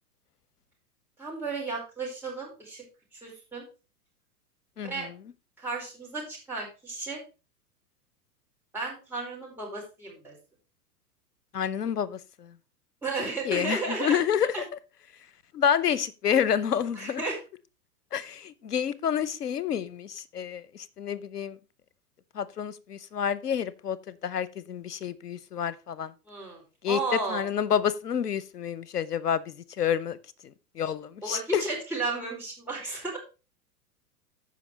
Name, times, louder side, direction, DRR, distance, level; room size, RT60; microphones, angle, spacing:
voice 1, 1.2-2.8 3.2-3.6 4.8-5.1 5.6-7.2 8.7-10.3 13.0-14.2 14.5-14.6 16.9-17.4 26.3-27.4 31.2-33.2, right 3 dB, 5° right, 4.7 m, -33 dB
voice 2, 4.8-5.1 11.5-12.5 13.4-14.5 15.5-17.2 18.1-21.6 22.3-26.1 26.8-30.2 30.4-31.6, left 8 dB, 80° left, 0.8 m, -29 dB
14.5 x 5.3 x 3.1 m
figure-of-eight pair, 100°, 46 cm